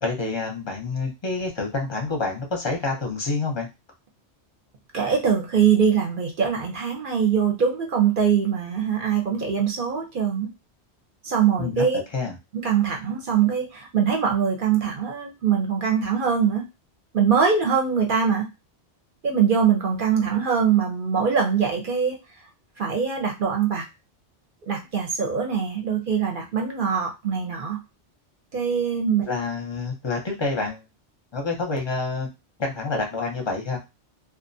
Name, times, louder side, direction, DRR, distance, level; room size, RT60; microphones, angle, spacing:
voice 1, 0.0-3.7 11.6-11.8 12.1-12.4 29.3-30.8 31.3-32.3 32.6-33.8, left 3 dB, 30° left, 1 dB, 0.5 m, -27 dB
voice 2, 4.9-10.5 11.2-12.0 12.5-16.7 17.1-18.5 19.2-22.2 22.8-23.8 24.7-27.8 28.5-29.3, right 7 dB, 55° right, 2 dB, 0.7 m, -22 dB
2.4 x 2.1 x 2.5 m, 0.24 s
omnidirectional pair, 1.1 m